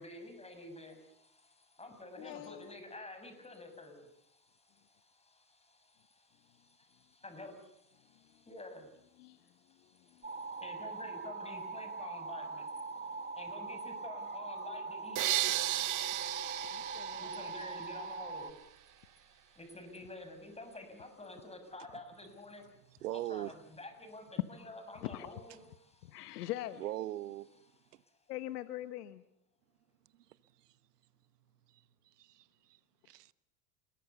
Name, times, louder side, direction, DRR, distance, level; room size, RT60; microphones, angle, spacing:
voice 1, 0.0-26.4 27.9-28.1, left 2 dB, 15° left, 6.9 m, -51 dB
voice 2, 2.2-2.7 8.3-8.4 9.2-10.3 12.9-13.0 16.7-17.3 24.6-24.7 25.0-25.3 26.0-26.8 28.3-29.2, left 14 dB, 80° left, 1.2 m, -43 dB
sound 1, 10.2-18.5, right 4 dB, 20° right, 2.2 m, -42 dB
sound 2, 15.2-18.2, right 14 dB, 40° right, 1.1 m, -35 dB
voice 3, 23.0-23.6 26.8-27.5 27.9-28.0 30.1-30.2 30.6-30.7 31.7-32.8 33.0-33.3, right 14 dB, 85° right, 1.1 m, -41 dB
29.0 x 22.0 x 6.9 m
hypercardioid pair, 90°, 46 cm